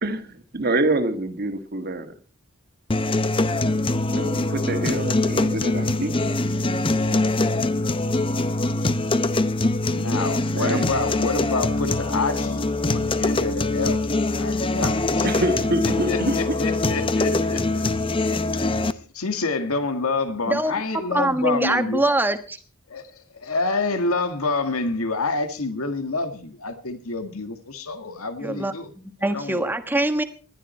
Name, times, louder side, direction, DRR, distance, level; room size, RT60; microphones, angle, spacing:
voice 1, 0.0-2.1 4.1-6.2 10.5-10.9 15.2-16.6, right 1 dB, 45° right, 1.7 m, -26 dB
sound 1, 2.9-18.9, left 2 dB, 25° left, 0.7 m, -23 dB
voice 2, 9.8-14.1 14.3-15.3 15.8-17.9 18.9-22.0 22.9-28.9 29.2-29.6, left 3 dB, 85° left, 1.9 m, -28 dB
voice 3, 21.1-22.6 28.4-30.2, right 1 dB, 10° right, 1.3 m, -23 dB
19.5 x 12.5 x 4.4 m
head